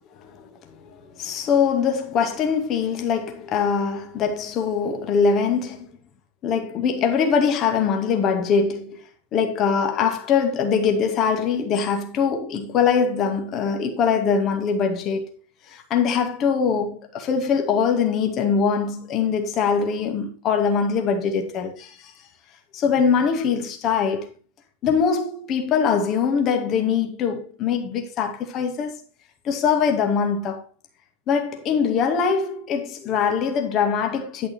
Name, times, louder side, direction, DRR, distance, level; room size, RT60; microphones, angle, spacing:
voice 1, 1.2-5.9 6.4-9.0 9.3-15.2 15.7-22.1 22.7-24.3 24.8-29.0 29.4-30.6 31.3-34.5, left 6 dB, 35° left, 2.2 m, -22 dB
11.0 x 6.3 x 4.6 m
figure-of-eight pair, 90°, 0 cm